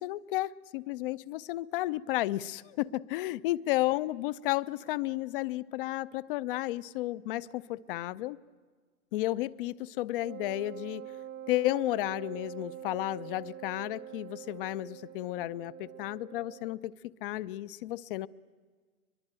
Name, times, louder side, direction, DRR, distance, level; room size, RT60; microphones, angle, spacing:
voice 1, 0.0-8.4 9.1-11.0 11.5-16.9 17.2-18.3, left 16 dB, 40° left, 18 dB, 0.7 m, -32 dB
Wind instrument woodwind instrument, 10.2-16.8, right 11 dB, 70° right, 1.2 m, -45 dB
23.0 x 22.5 x 9.0 m, 1.5 s
hypercardioid pair, 125°, 43 cm